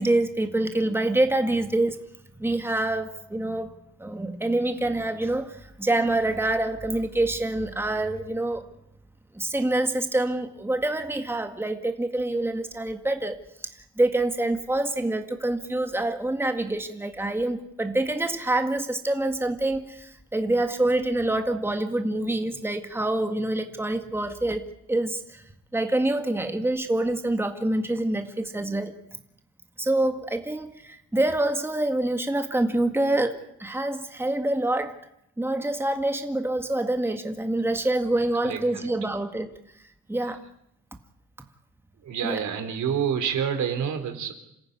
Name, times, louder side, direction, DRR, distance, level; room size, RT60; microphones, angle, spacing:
voice 1, 0.0-2.0 2.4-8.6 9.3-13.4 13.8-25.4 25.7-28.9 29.8-35.0 35.4-39.5 40.1-40.4 42.2-42.5, right 1 dB, 10° right, 5 dB, 1.9 m, -26 dB
voice 2, 42.1-44.3, right 8 dB, 70° right, 7 dB, 3.6 m, -27 dB
27.5 x 14.5 x 9.6 m, 0.79 s
cardioid pair, 90°, 30 cm